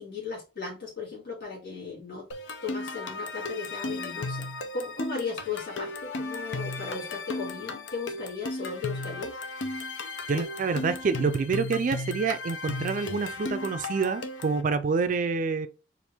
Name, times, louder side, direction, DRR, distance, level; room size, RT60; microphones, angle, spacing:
voice 1, 0.0-2.2 2.6-9.4, left 5 dB, 60° left, 1.8 m, -36 dB
sound 1, 2.3-14.6, left 2 dB, 85° left, 0.6 m, -35 dB
voice 2, 10.3-15.7, right 4 dB, 45° right, 0.4 m, -27 dB
4.4 x 2.5 x 3.4 m
head